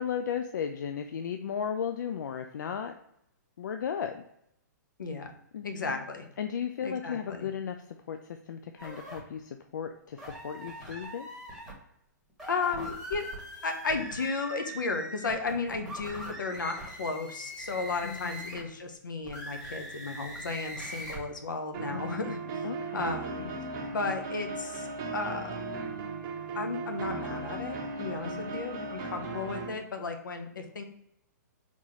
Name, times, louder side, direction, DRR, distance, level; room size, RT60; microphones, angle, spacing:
voice 1, 0.0-2.9 3.6-4.2 5.5-6.0 6.4-7.8 8.1-11.3 18.0-18.6 21.9-22.0 22.6-23.1 28.0-28.6, left 8 dB, 75° left, 7 dB, 0.4 m, -35 dB
voice 2, 5.6-6.3 6.8-7.5 12.5-13.3 13.6-22.7 22.9-23.5 23.9-24.9 25.1-25.8 26.5-27.8 28.0-30.8, left 4 dB, 90° left, 5 dB, 0.8 m, -34 dB
sound 1, 8.8-9.2 10.2-11.7 12.3-18.7 19.2-21.2, equal, ahead, 1.4 m, -42 dB
sound 2, 21.7-29.7, right 3 dB, 40° right, 1.1 m, -36 dB
4.1 x 3.6 x 3.1 m, 0.76 s
hypercardioid pair, 140°, 10 cm